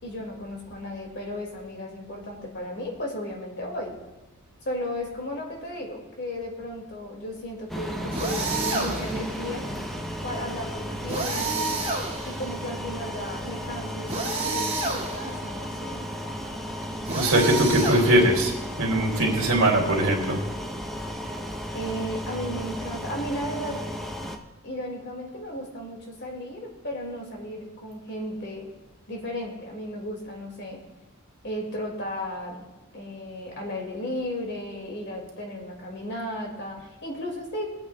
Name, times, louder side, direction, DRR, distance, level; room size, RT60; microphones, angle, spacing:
voice 1, 0.0-3.9 4.6-9.7 10.2-11.9 12.2-16.1 21.7-23.8 24.6-28.7 29.1-30.8 31.4-32.7 32.9-37.7, left 1 dB, 55° left, 0 dB, 2.4 m, -34 dB
sound 1, 7.7-24.4, equal, ahead, 0.8 m, -34 dB
sound 2, 8.1-9.3 11.1-12.5 14.1-15.4 17.0-18.5, right 3 dB, 30° right, 2.3 m, -29 dB
voice 2, 17.1-20.4, right 1 dB, 70° right, -1 dB, 2.7 m, -21 dB
22.5 x 8.7 x 2.4 m, 1.0 s
head